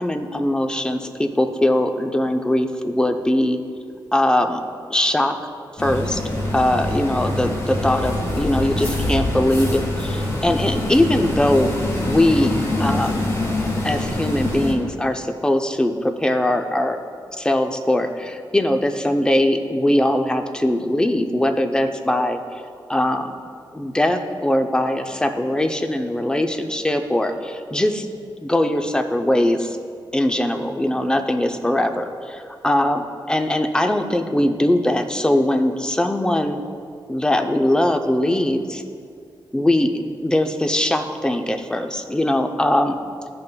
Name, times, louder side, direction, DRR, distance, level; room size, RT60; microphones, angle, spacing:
voice 1, 0.0-3.6 4.1-4.6 4.9-5.4 5.8-6.2 6.5-11.8 12.0-13.2 13.8-17.0 17.4-22.4 22.9-23.3 23.7-28.1 28.4-29.8 30.1-36.6 37.1-38.8 39.5-43.0, left 1 dB, 10° left, 6 dB, 0.5 m, -21 dB
sound 1, 5.8-14.7, left 1 dB, 35° left, 1.4 m, -24 dB
13.0 x 5.4 x 2.2 m, 2.2 s
wide cardioid pair, 110°, 9 cm